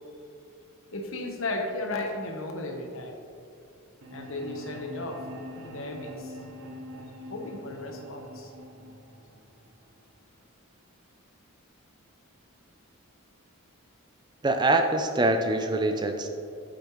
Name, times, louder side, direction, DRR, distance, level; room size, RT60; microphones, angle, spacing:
voice 1, 0.9-3.2 4.1-5.2 5.5-6.4 7.3-8.5, left 2 dB, 60° left, 3 dB, 1.0 m, -35 dB
sound 1, 4.0-10.0, left 1 dB, 65° right, 1.0 m, -43 dB
voice 2, 14.4-16.3, right 2 dB, 20° right, 6 dB, 0.4 m, -24 dB
8.7 x 8.5 x 3.1 m, 2.6 s
head